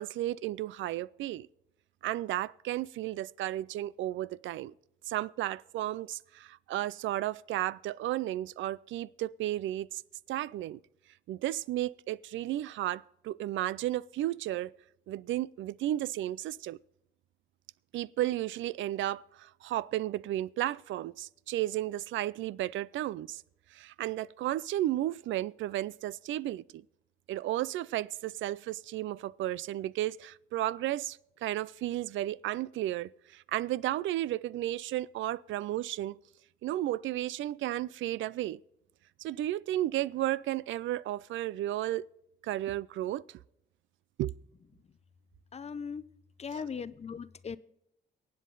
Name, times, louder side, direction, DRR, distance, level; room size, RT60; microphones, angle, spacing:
voice 1, 0.0-1.5 2.0-4.7 5.1-10.0 10.3-10.8 11.3-14.7 15.1-16.8 17.9-23.4 23.7-26.8 27.3-36.2 36.6-38.6 39.2-42.1 42.4-43.4 44.2-44.3, right 14 dB, 75° right, 0.4 m, -33 dB
voice 2, 45.5-46.1 46.4-47.6, left 6 dB, 35° left, 0.6 m, -39 dB
23.5 x 8.4 x 3.9 m
cardioid pair, 90°, 20 cm